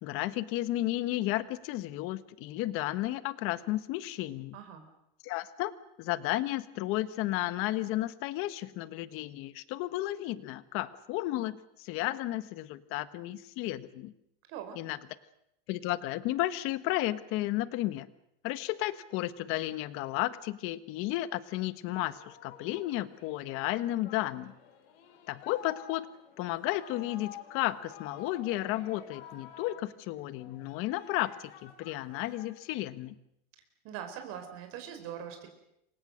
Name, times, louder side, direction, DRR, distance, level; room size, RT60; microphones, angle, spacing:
voice 1, 0.0-4.6 5.2-5.7 6.0-14.1 14.7-15.0 15.7-18.1 18.4-24.5 25.3-26.1 26.4-33.2, left 16 dB, 45° left, 13 dB, 1.5 m, -33 dB
voice 2, 4.5-4.8 14.5-14.8 33.8-35.5, right 9 dB, 50° right, 6 dB, 4.7 m, -41 dB
Singing, 22.0-33.0, left 8 dB, 90° left, 5.8 m, -51 dB
28.5 x 24.5 x 6.6 m, 0.81 s
supercardioid pair, 155°, 29 cm